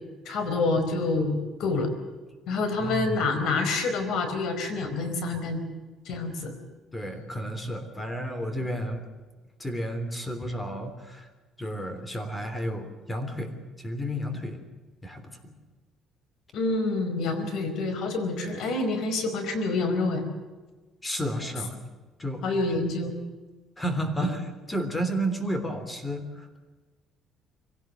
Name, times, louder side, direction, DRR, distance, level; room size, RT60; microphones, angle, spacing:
voice 1, 0.2-1.9 2.5-5.6 6.0-6.6 16.5-20.3 22.4-23.2, left 3 dB, 70° left, 8 dB, 4.7 m, -27 dB
voice 2, 2.8-3.1 6.9-9.0 9.6-11.3 11.6-13.5 13.8-14.6 15.0-15.5 21.0-21.8 22.2-22.5 23.8-26.6, equal, 15° left, 9 dB, 3.3 m, -32 dB
24.0 x 17.5 x 7.6 m, 1.3 s
cardioid pair, 130°, 0 cm